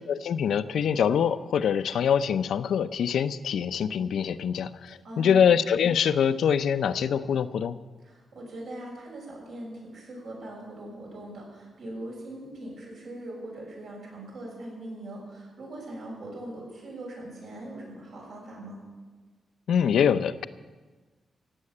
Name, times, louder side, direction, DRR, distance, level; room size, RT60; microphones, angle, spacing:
voice 1, 0.0-7.8 19.7-20.5, left 8 dB, 80° left, 12 dB, 0.6 m, -24 dB
voice 2, 5.0-5.4 8.0-18.8, right 1 dB, 75° right, -2 dB, 6.4 m, -41 dB
16.5 x 7.7 x 8.5 m, 1.3 s
cardioid pair, 120°, 0 cm